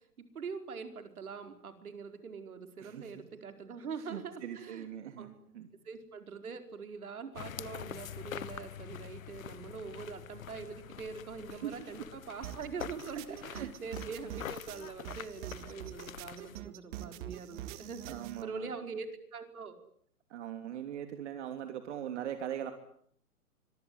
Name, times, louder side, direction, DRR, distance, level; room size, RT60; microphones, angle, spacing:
voice 1, 0.2-4.9 5.2-5.3 5.8-19.8, right 5 dB, 70° right, 7 dB, 5.1 m, -43 dB
voice 2, 2.8-3.1 4.0-5.7 11.5-12.1 13.4-13.7 18.1-18.7 20.3-22.7, right 10 dB, 50° right, 7 dB, 3.2 m, -41 dB
sound 1, 7.3-16.6, left 10 dB, 60° left, 1.3 m, -45 dB
sound 2, 12.4-18.4, right 13 dB, 35° right, 2.3 m, -45 dB
25.0 x 24.0 x 9.5 m, 0.64 s
hypercardioid pair, 135°, 45 cm